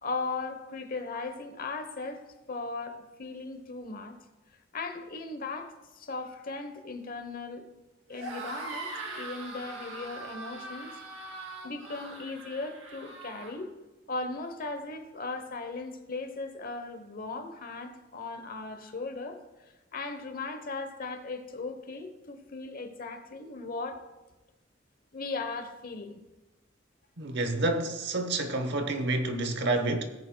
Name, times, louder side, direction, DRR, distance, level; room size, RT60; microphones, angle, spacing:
voice 1, 0.0-2.2 2.5-4.2 4.7-7.7 8.1-10.9 11.6-13.7 14.1-19.4 19.9-24.0 25.1-26.2, left 3 dB, 45° left, 0.9 m, -37 dB
sound 1, 8.1-13.5, right 3 dB, 85° right, 2.9 m, -41 dB
voice 2, 27.2-30.0, right 2 dB, 60° right, 1.0 m, -29 dB
16.0 x 9.1 x 2.2 m
head